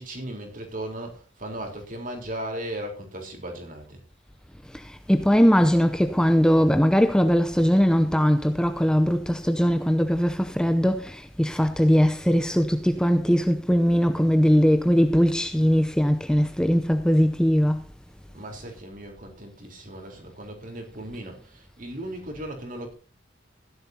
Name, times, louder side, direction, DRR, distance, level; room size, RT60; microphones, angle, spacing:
voice 1, 0.0-4.0 18.3-22.9, right 1 dB, 45° right, 3.9 m, -37 dB
voice 2, 4.7-17.9, equal, 5° left, 0.6 m, -20 dB
16.5 x 11.0 x 2.8 m
head